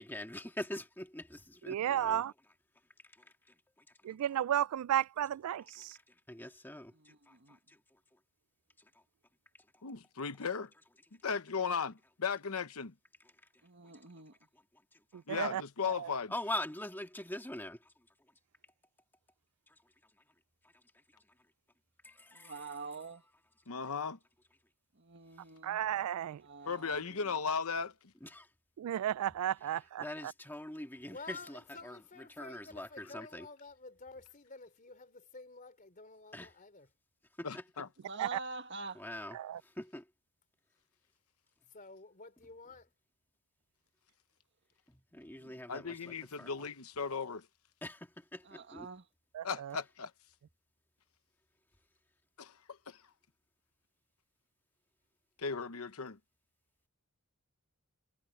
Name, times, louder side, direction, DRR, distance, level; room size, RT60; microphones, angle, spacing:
voice 1, 0.0-2.2 3.1-3.3 4.1-4.2 6.1-7.8 16.3-17.9 19.7-19.8 21.1-21.2 22.0-22.8 28.2-28.5 30.0-32.0 32.4-33.5 36.3-36.5 37.4-37.6 38.9-40.1 44.9-46.5 47.8-48.9, left 1 dB, 10° left, 1.8 m, -43 dB
voice 2, 1.7-2.3 4.0-6.0 15.1-16.1 25.6-26.4 28.8-30.3 38.2-38.4 39.3-39.6 49.3-49.8, right 11 dB, 75° right, 0.3 m, -34 dB
voice 3, 6.9-7.6 13.8-14.3 22.3-23.2 24.9-25.8 26.4-27.4 38.0-39.0 45.2-45.6 46.0-46.2 48.4-49.0, right 3 dB, 55° right, 1.7 m, -46 dB
voice 4, 9.8-10.7 11.2-12.9 15.3-16.3 23.7-24.2 26.7-27.9 37.4-37.9 45.7-47.4 49.4-50.1 52.4-52.5 52.9-53.0 55.4-56.2, left 5 dB, 70° left, 1.0 m, -36 dB
voice 5, 31.0-36.9 41.7-42.9, left 3 dB, 35° left, 3.4 m, -51 dB
head